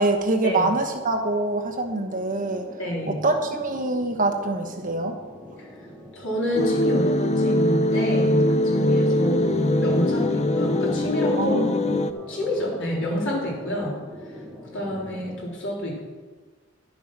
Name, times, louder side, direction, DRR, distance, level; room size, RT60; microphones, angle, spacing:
voice 1, 0.0-2.7 3.1-5.1 11.4-12.0, right 2 dB, 40° right, 4 dB, 1.2 m, -25 dB
sound 1, 0.5-15.4, equal, 5° left, 1.2 m, -43 dB
voice 2, 2.8-3.2 6.1-11.6 12.3-14.1 14.7-16.0, equal, 60° left, -4 dB, 3.5 m, -28 dB
sound 2, 6.6-12.1, left 1 dB, 30° left, 0.5 m, -22 dB
11.0 x 7.2 x 6.0 m, 1.4 s
head